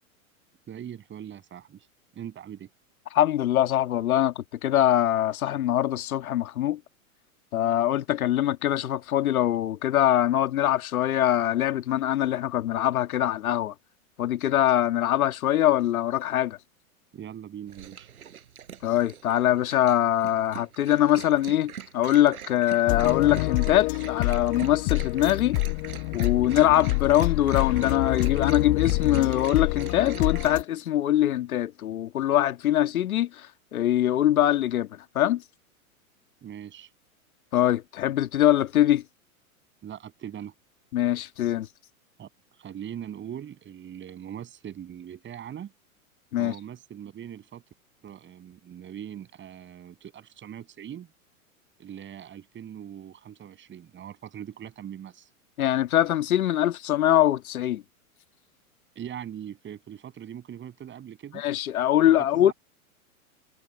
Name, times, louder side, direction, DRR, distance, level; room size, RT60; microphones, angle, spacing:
voice 1, 0.7-1.9 2.1-2.7 17.1-18.1 36.4-36.9 39.8-40.5 42.2-42.3 42.6-45.7 46.4-47.6 48.0-51.1 51.8-55.3 59.0-61.4 62.1-62.5, right 9 dB, 25° right, 7.4 m, -41 dB
voice 2, 3.1-6.8 7.5-13.7 14.2-16.6 18.8-25.6 26.1-35.4 37.5-39.0 40.9-41.7 46.3-46.5 55.6-57.8 61.3-62.5, left 12 dB, 75° left, 1.7 m, -23 dB
Dog, 17.7-30.6, right 9 dB, 80° right, 7.2 m, -44 dB
sound 1, 22.9-30.6, left 27 dB, 45° left, 1.2 m, -27 dB
hypercardioid pair, 110°, 43 cm